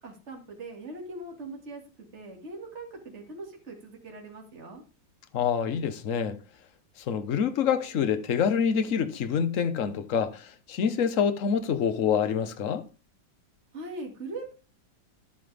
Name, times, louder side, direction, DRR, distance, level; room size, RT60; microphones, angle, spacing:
voice 1, 0.0-4.8 13.7-14.5, right 2 dB, 40° right, 2.7 m, -41 dB
voice 2, 5.3-6.4 7.1-12.8, left 7 dB, 50° left, 1.2 m, -26 dB
11.0 x 8.9 x 3.4 m
omnidirectional pair, 2.0 m